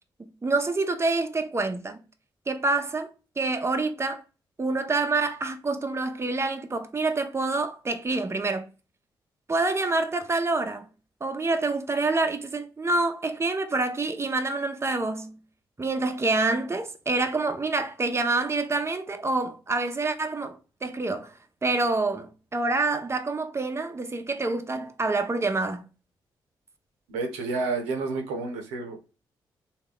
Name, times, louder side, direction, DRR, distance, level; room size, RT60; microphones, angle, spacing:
voice 1, 0.4-2.0 2.5-4.2 4.6-8.7 9.5-10.9 11.2-15.3 15.8-21.3 21.6-25.8, right 3 dB, 25° right, 0.6 m, -27 dB
voice 2, 27.1-29.0, right 3 dB, 90° right, 0.6 m, -30 dB
3.1 x 2.3 x 3.5 m
hypercardioid pair, 40°, 10 cm